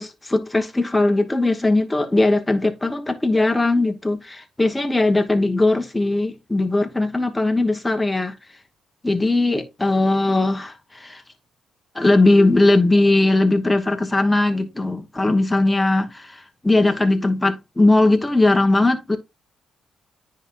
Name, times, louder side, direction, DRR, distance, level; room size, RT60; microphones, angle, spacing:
voice 1, 0.0-8.3 9.0-11.2 11.9-19.2, left 2 dB, 10° left, 1.1 m, -19 dB
10.0 x 4.3 x 2.4 m
cardioid pair, 90°, 0 cm